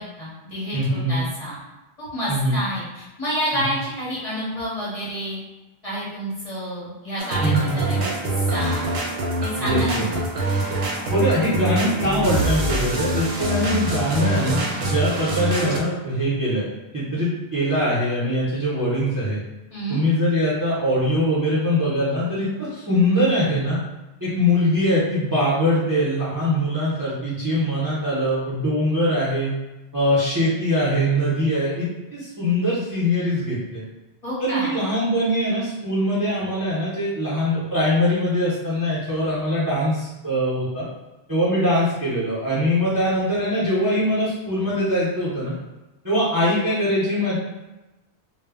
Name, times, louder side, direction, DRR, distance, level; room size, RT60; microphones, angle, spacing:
voice 1, 0.0-1.5 2.1-5.4 5.8-8.1 8.5-8.9 9.4-10.3 19.7-20.0 34.2-34.7, equal, 40° left, -8 dB, 0.7 m, -29 dB
voice 2, 0.7-1.2 2.3-2.6 3.5-3.7 7.4-7.9 9.6-10.0 11.1-16.6 16.9-19.4 19.9-23.8 24.2-29.5 29.9-33.8 34.4-40.8 41.3-45.5 46.0-47.4, equal, 25° right, -9 dB, 0.5 m, -22 dB
sound 1, 7.2-15.8, right 2 dB, 80° right, 0.8 m, -24 dB
2.1 x 2.0 x 3.4 m, 1.1 s
omnidirectional pair, 1.1 m